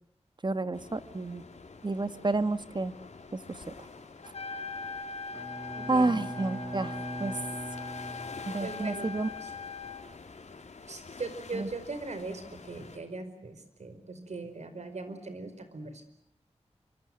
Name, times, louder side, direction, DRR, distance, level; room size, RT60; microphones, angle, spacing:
voice 1, 0.4-1.4 1.8-2.9 3.3-3.4 3.7-3.8 5.9-7.4 8.5-9.3 11.5-11.7, right 2 dB, 40° right, 11 dB, 1.8 m, -30 dB
sound 1, 0.7-13.0, left 4 dB, 80° left, 3.8 m, -49 dB
Trumpet, 4.2-10.0, left 5 dB, 60° left, 2.0 m, -40 dB
Bowed string instrument, 5.3-8.9, right 1 dB, 10° right, 1.3 m, -41 dB
voice 2, 5.7-6.1 8.6-9.1 9.4-9.5 10.9-16.0, right 3 dB, 75° right, 10 dB, 5.0 m, -40 dB
27.5 x 25.0 x 7.8 m, 0.75 s
wide cardioid pair, 70°, 12 cm